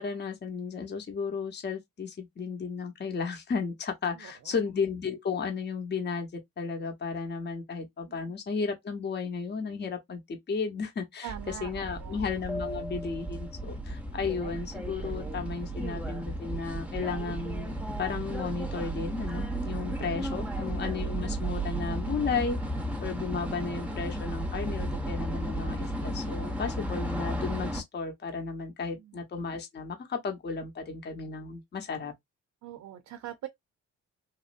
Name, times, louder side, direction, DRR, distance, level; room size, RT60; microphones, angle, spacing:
voice 1, 0.0-11.3 11.6-22.6 23.0-32.1, left 5 dB, 35° left, 0.8 m, -34 dB
voice 2, 4.2-4.6 8.1-8.3 11.2-12.2 19.8-20.6 29.0-29.2 32.6-33.5, right 11 dB, 65° right, 0.5 m, -43 dB
sound 1, 11.3-27.8, right 1 dB, 5° right, 0.7 m, -34 dB
3.0 x 2.5 x 2.5 m
cardioid pair, 90°, 30 cm